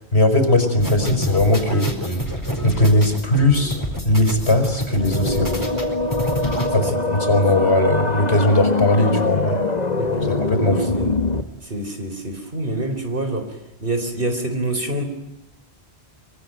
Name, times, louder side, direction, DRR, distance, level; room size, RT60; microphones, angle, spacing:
voice 1, 0.1-1.9 2.6-3.8 4.0-5.5 6.7-9.6 10.2-10.9, left 1 dB, 75° left, 7 dB, 5.1 m, -18 dB
sound 1, 0.8-6.7, equal, 15° left, 4.5 m, -27 dB
sound 2, 4.9-11.4, left 2 dB, 40° left, 1.7 m, -23 dB
voice 2, 6.7-7.4 9.5-9.6 10.0-11.2 11.6-13.5 13.8-15.0, right 1 dB, 55° right, 7 dB, 4.3 m, -27 dB
25.0 x 24.5 x 9.2 m, 0.90 s
omnidirectional pair, 1.1 m